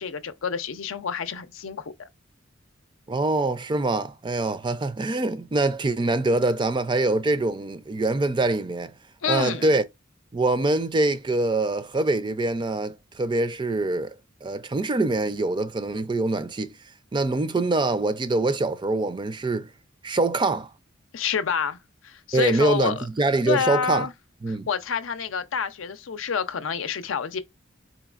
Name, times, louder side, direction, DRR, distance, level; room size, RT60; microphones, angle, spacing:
voice 1, 0.0-2.1 9.2-9.8 21.1-21.8 22.0-23.1 23.5-24.1 24.5-27.4, left 6 dB, 85° left, 0.5 m, -28 dB
voice 2, 3.1-8.9 9.3-9.8 10.3-14.2 14.4-16.7 17.1-19.7 20.0-20.7 22.3-24.1 24.4-24.7, right 2 dB, 25° right, 0.4 m, -24 dB
4.0 x 3.0 x 2.4 m
head